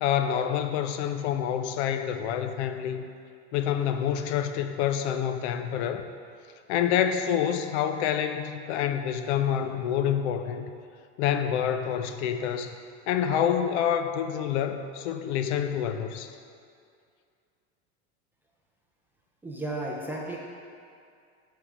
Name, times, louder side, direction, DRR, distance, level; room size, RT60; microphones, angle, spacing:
voice 1, 0.0-3.0 3.5-6.1 6.7-10.6 11.2-12.7 13.1-16.3, left 9 dB, 70° left, 8 dB, 0.6 m, -27 dB
voice 2, 19.4-20.4, right 1 dB, 5° right, -3 dB, 0.3 m, -33 dB
7.5 x 3.5 x 4.8 m, 2.3 s
supercardioid pair, 140°, 35 cm